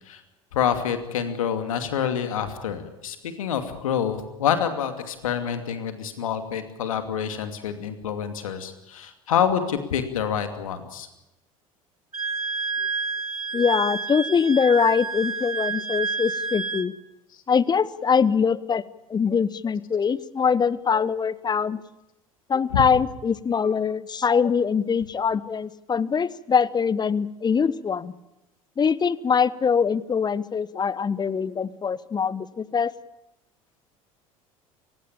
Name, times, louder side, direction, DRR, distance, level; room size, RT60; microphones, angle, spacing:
voice 1, 0.5-11.1 22.7-22.8, left 8 dB, 75° left, 8 dB, 2.5 m, -27 dB
Wind instrument woodwind instrument, 12.1-16.9, right 4 dB, 90° right, 1.0 m, -29 dB
voice 2, 13.5-16.9 17.5-18.8 19.1-21.8 22.5-28.1 28.8-32.9, left 6 dB, 25° left, 19 dB, 1.0 m, -23 dB
29.5 x 16.5 x 8.7 m, 0.93 s
figure-of-eight pair, 65°, 18 cm